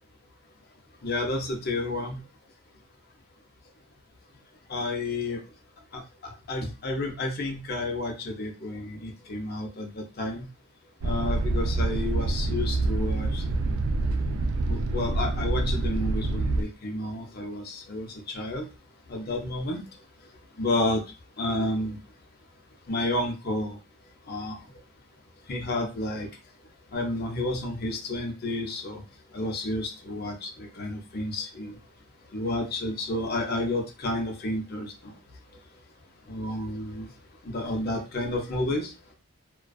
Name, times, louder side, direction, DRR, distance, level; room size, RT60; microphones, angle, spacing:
voice 1, 1.0-2.2 4.7-5.4 5.9-9.9 10.2-10.5 11.0-13.4 14.7-18.1 18.3-18.7 19.1-19.8 20.6-21.0 21.4-22.0 22.9-23.8 24.3-24.5 25.5-26.3 26.9-29.0 29.3-31.7 32.3-35.1 36.3-37.1 37.5-38.9, left 2 dB, 45° left, 2 dB, 0.6 m, -30 dB
sound 1, 11.0-16.6, right 2 dB, 80° right, 0.3 m, -26 dB
2.4 x 2.3 x 2.2 m, 0.29 s
head